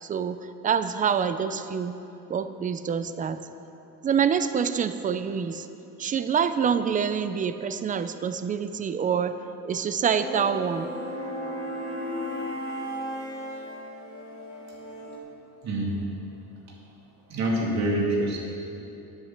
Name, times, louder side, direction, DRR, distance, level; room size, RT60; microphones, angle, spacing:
voice 1, 0.0-1.9 2.3-3.4 4.0-5.7 6.0-9.4 9.6-10.9, right 7 dB, 25° right, 11 dB, 0.4 m, -26 dB
sound 1, 10.1-15.2, equal, 40° left, 2.4 m, -35 dB
voice 2, 17.3-18.4, right 1 dB, 45° right, -2 dB, 2.5 m, -25 dB
10.5 x 8.2 x 7.2 m, 2.9 s
cardioid pair, 150°, 36 cm